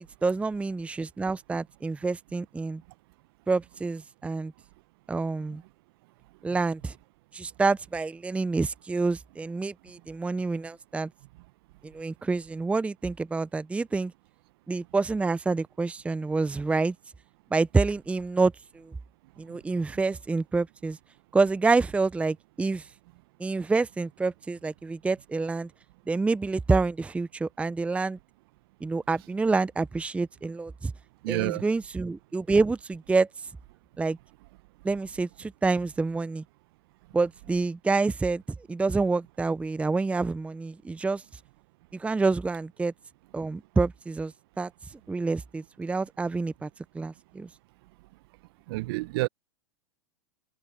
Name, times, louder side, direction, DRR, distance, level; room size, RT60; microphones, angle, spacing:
voice 1, 0.2-2.8 3.5-4.5 5.1-5.6 6.4-6.9 7.3-11.1 11.8-14.1 14.7-16.9 17.5-18.9 19.4-21.0 21.3-22.9 23.4-25.7 26.1-28.2 28.8-30.9 31.3-33.3 34.0-34.2 34.8-36.4 37.1-41.2 41.9-42.9 43.3-44.7 45.1-46.7 46.9-47.5, right 3 dB, 10° right, 0.7 m, -27 dB
voice 2, 31.2-31.6 48.7-49.3, right 21 dB, 55° right, 1.2 m, -28 dB
hypercardioid pair, 100°, 15 cm